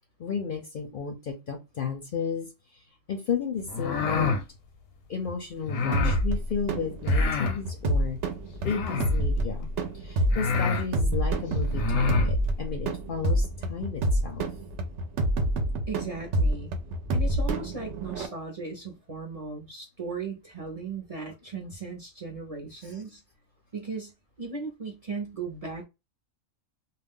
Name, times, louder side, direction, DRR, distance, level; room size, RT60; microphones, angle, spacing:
voice 1, 0.2-2.8 3.1-4.4 5.1-8.2 8.6-14.5 22.8-23.0, left 6 dB, 55° left, 0.6 m, -33 dB
sound 1, 3.7-4.4 5.7-6.2 7.0-7.6 8.6-9.2 9.9-10.0 10.3-10.9 11.7-12.3, left 4 dB, 90° left, 1.0 m, -27 dB
sound 2, 5.9-18.3, right 1 dB, 70° right, 0.9 m, -27 dB
voice 2, 15.9-16.8 17.1-23.2 23.7-25.9, right 4 dB, 35° right, 0.6 m, -37 dB
2.4 x 2.2 x 3.5 m
omnidirectional pair, 1.3 m